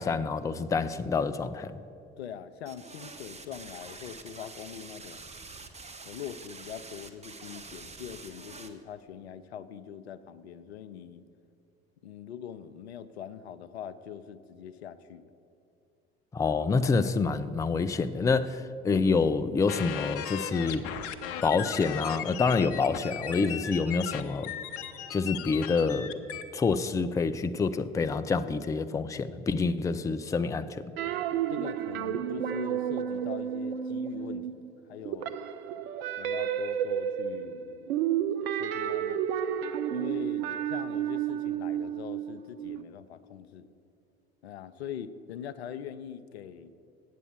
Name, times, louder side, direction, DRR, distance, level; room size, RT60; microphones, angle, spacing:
voice 1, 0.0-1.7 16.3-20.8 21.4-24.5 25.1-26.1 26.5-30.8, left 4 dB, 10° left, 11 dB, 0.4 m, -27 dB
voice 2, 2.2-5.3 6.0-11.2 12.0-15.3 31.5-34.6 34.9-35.4 36.2-37.9 38.5-39.2 39.9-43.7 44.4-46.7, left 8 dB, 80° left, 14 dB, 0.5 m, -43 dB
sound 1, 2.7-8.7, right 3 dB, 20° right, 1.0 m, -46 dB
sound 2, 19.7-26.4, left 9 dB, 50° left, 0.7 m, -37 dB
sound 3, 31.0-34.7 35.0-42.8, right 9 dB, 70° right, 0.6 m, -31 dB
8.4 x 8.1 x 7.2 m, 2.7 s
figure-of-eight pair, 60°, 32 cm